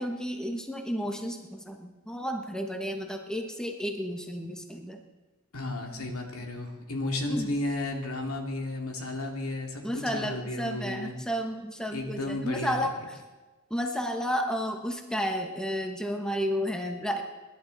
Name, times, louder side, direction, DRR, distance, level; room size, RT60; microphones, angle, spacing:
voice 1, 0.0-5.0 7.3-7.5 9.8-12.9 13.7-17.2, equal, 5° left, 3 dB, 1.3 m, -32 dB
voice 2, 5.5-11.1 11.9-12.9, left 2 dB, 80° left, 2 dB, 2.5 m, -33 dB
25.5 x 11.5 x 4.1 m, 1.2 s
head